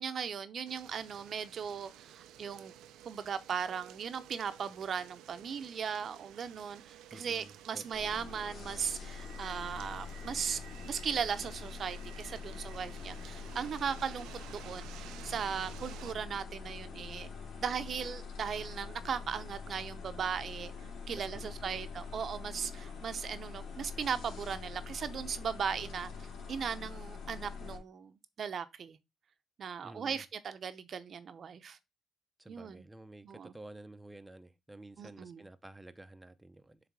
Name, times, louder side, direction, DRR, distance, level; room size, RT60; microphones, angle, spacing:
voice 1, 0.0-2.7 3.0-17.3 17.6-29.0 29.6-31.8 32.5-32.8 33.2-33.5 35.0-35.4, right 7 dB, 55° right, 0.7 m, -38 dB
sound 1, 0.7-16.1, right 11 dB, 90° right, 0.5 m, -53 dB
voice 2, 7.1-7.9 21.1-21.8 29.8-30.2 32.4-36.8, right 2 dB, 10° right, 0.7 m, -51 dB
sound 2, 7.9-27.8, left 5 dB, 75° left, 2.5 m, -45 dB
7.4 x 3.3 x 4.7 m
cardioid pair, 90°, 0 cm